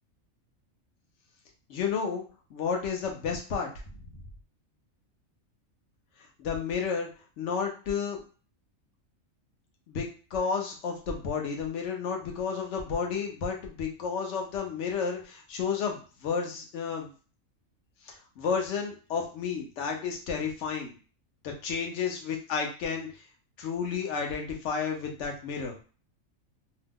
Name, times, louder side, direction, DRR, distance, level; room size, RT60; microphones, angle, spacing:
voice 1, 1.7-2.2 2.5-3.7 6.4-7.1 7.4-8.2 9.9-17.1 18.0-20.9 21.4-23.1 23.6-25.8, left 6 dB, 65° left, 1 dB, 1.0 m, -31 dB
2.8 x 2.0 x 3.5 m, 0.37 s
omnidirectional pair, 1.4 m